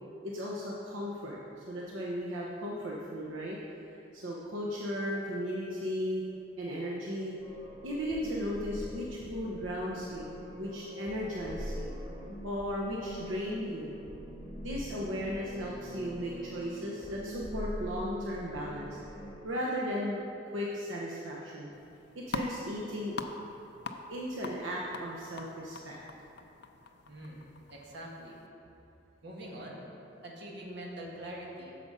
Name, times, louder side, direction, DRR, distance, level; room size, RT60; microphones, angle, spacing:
voice 1, 0.2-1.4 1.7-3.6 4.1-6.2 6.6-7.3 7.8-11.9 12.4-13.9 14.6-19.0 19.4-20.2 20.4-21.7 22.1-23.1 24.1-26.0, equal, 75° right, -4 dB, 1.0 m, -36 dB
sound 1, 7.4-19.3, equal, 25° right, 2.3 m, -43 dB
sound 2, 21.7-28.5, left 3 dB, 55° left, 0.5 m, -44 dB
voice 2, 27.1-27.4 27.7-28.4 29.2-29.9 30.2-31.7, right 1 dB, 55° right, -3 dB, 1.6 m, -44 dB
8.5 x 6.9 x 5.5 m, 2.8 s
head